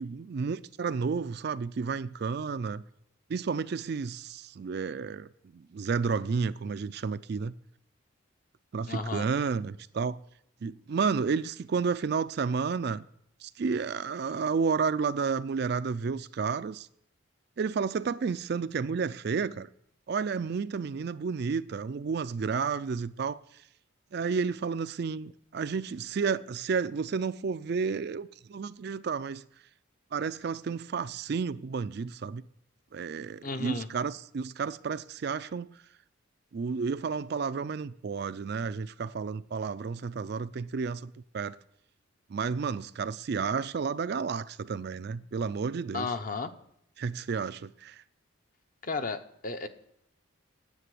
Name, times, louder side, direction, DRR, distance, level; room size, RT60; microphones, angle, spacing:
voice 1, 0.0-2.8 3.3-7.5 8.7-10.2 10.6-13.0 13.4-16.9 17.6-19.7 20.1-23.4 24.1-29.4 30.1-32.4 32.9-35.7 36.5-41.6 42.3-46.1 47.0-48.0, right 5 dB, 50° right, 0.4 m, -31 dB
voice 2, 8.9-9.3 33.4-33.9 45.9-46.5 48.8-49.7, left 4 dB, 40° left, 0.8 m, -33 dB
9.8 x 8.2 x 7.7 m
head